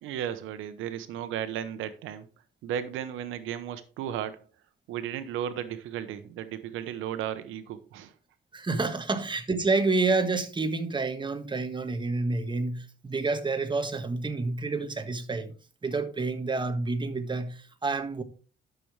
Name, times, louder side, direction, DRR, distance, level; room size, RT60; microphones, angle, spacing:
voice 1, 0.0-2.3 2.6-4.4 4.9-8.1, right 10 dB, 90° right, 0.9 m, -34 dB
voice 2, 8.5-15.5 15.8-18.2, right 3 dB, 25° right, 1.6 m, -29 dB
12.0 x 6.9 x 3.3 m
cardioid pair, 90°, 20 cm